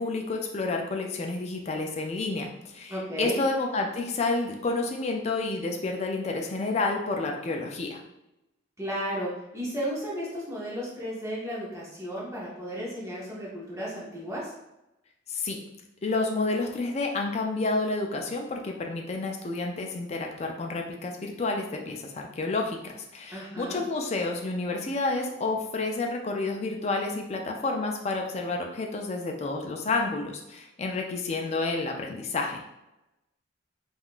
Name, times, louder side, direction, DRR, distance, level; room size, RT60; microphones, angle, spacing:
voice 1, 0.0-8.0 15.3-15.6 16.0-32.6, left 3 dB, 35° left, 2 dB, 0.3 m, -30 dB
voice 2, 2.9-3.4 8.8-14.5 23.3-23.8, equal, 15° right, -6 dB, 0.6 m, -34 dB
3.6 x 2.3 x 2.4 m, 0.92 s
head